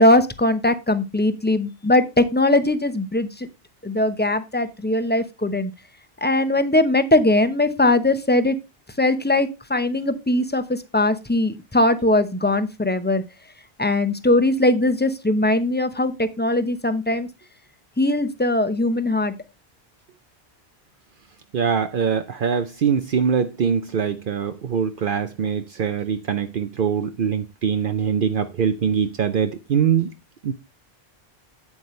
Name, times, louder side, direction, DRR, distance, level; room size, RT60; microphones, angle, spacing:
voice 1, 0.0-3.5 3.8-5.7 6.2-8.6 9.0-13.2 13.8-17.3 18.0-19.3, left 1 dB, 10° left, 0.8 m, -20 dB
voice 2, 21.5-30.1 30.4-30.5, right 7 dB, 60° right, 0.8 m, -23 dB
8.7 x 8.1 x 3.2 m
omnidirectional pair, 1.0 m